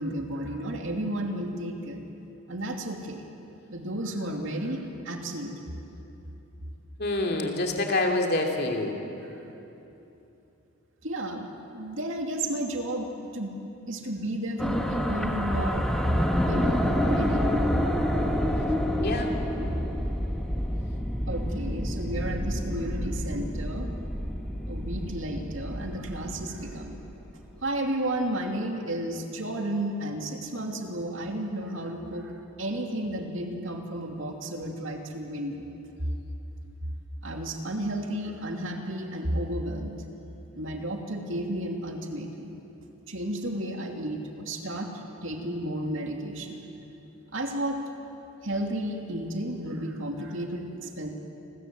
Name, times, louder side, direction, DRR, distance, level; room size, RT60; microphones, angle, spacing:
voice 1, 0.0-2.0 2.5-3.2 3.7-5.8 9.2-9.4 11.0-13.6 13.9-17.5 18.0-18.3 18.6-18.8 21.3-23.9 24.6-27.0 27.6-32.3 32.6-35.6 37.2-40.0 40.5-42.5 43.1-44.9 45.2-46.6 47.3-47.8 48.4-51.1, right 1 dB, 60° right, 2 dB, 2.7 m, -32 dB
voice 2, 7.0-9.0 19.0-19.3, left 2 dB, 45° left, 1 dB, 2.9 m, -26 dB
sound 1, 14.6-27.2, equal, ahead, 1.5 m, -28 dB
29.0 x 21.5 x 7.8 m, 3.0 s
head